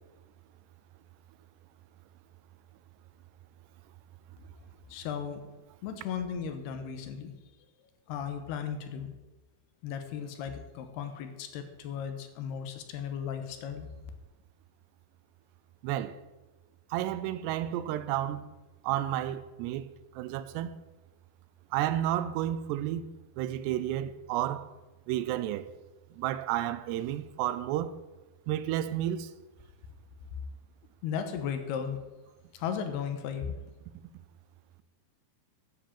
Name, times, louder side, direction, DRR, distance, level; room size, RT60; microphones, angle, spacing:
voice 1, 4.9-5.4 5.8-7.4 8.1-9.1 9.8-13.9 31.0-32.0 32.5-33.6, left 7 dB, 80° left, 3.0 m, -36 dB
voice 2, 15.8-16.2 16.9-18.5 18.8-19.8 20.2-20.8 21.7-23.0 23.4-24.7 25.1-25.7 26.2-27.9 28.5-29.3, right 12 dB, 90° right, 2.8 m, -31 dB
10.0 x 7.4 x 7.3 m
omnidirectional pair, 4.7 m